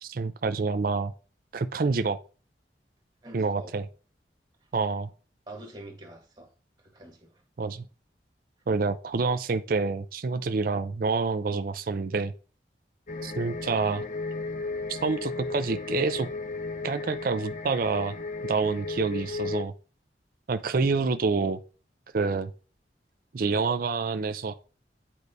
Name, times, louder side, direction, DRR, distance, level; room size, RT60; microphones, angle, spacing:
voice 1, 0.0-1.1 1.5-2.2 3.3-3.9 4.7-5.1 7.6-7.8 8.7-12.3 13.2-14.0 14.9-16.3 16.8-18.2 18.4-19.7 20.5-21.6 22.1-22.5 23.3-24.5, right 4 dB, 55° right, 0.4 m, -27 dB
voice 2, 3.2-3.7 5.5-6.5 6.8-7.3, right 1 dB, 30° right, 1.2 m, -45 dB
sound 1, 13.1-19.6, left 3 dB, 45° left, 0.6 m, -34 dB
8.5 x 4.7 x 2.7 m
head